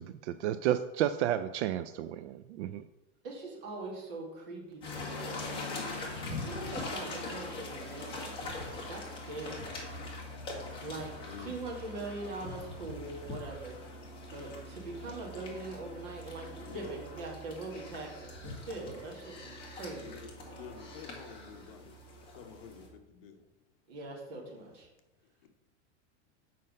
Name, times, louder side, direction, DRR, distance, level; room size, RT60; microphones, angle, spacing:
voice 1, 0.0-2.8, right 11 dB, 70° right, 12 dB, 0.5 m, -32 dB
voice 2, 3.2-5.8 6.4-9.7 10.8-11.1 11.4-13.8 14.3-20.1 23.9-24.9, right 2 dB, 50° right, -1 dB, 2.4 m, -42 dB
sound 1, 4.8-22.9, left 2 dB, 15° left, 1.4 m, -42 dB
voice 3, 11.2-11.6 16.7-17.1 20.0-23.5 24.7-24.8 25.2-25.5, left 7 dB, 50° left, 5 dB, 1.1 m, -50 dB
7.5 x 5.3 x 5.3 m, 1.0 s
supercardioid pair, 175°, 36 cm